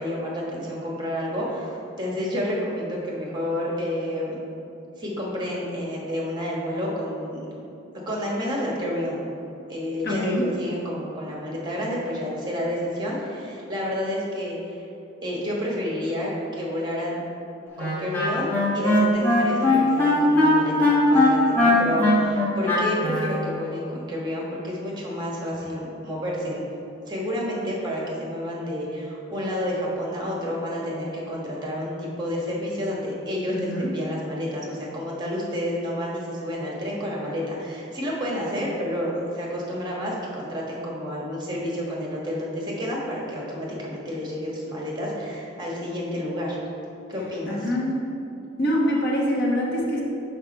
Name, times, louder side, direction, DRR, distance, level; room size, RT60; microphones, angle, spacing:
voice 1, 0.0-4.4 5.0-7.4 8.1-9.2 9.7-14.8 15.2-17.2 17.8-26.6 27.1-46.6 47.1-47.6, equal, 20° right, -3 dB, 1.3 m, -30 dB
voice 2, 10.0-10.5 33.5-33.9 47.5-48.1 48.6-50.0, equal, 55° left, -3 dB, 1.2 m, -24 dB
Wind instrument woodwind instrument, 17.8-23.4, left 2 dB, 10° left, 1.3 m, -20 dB
6.1 x 5.8 x 4.3 m, 2.7 s
head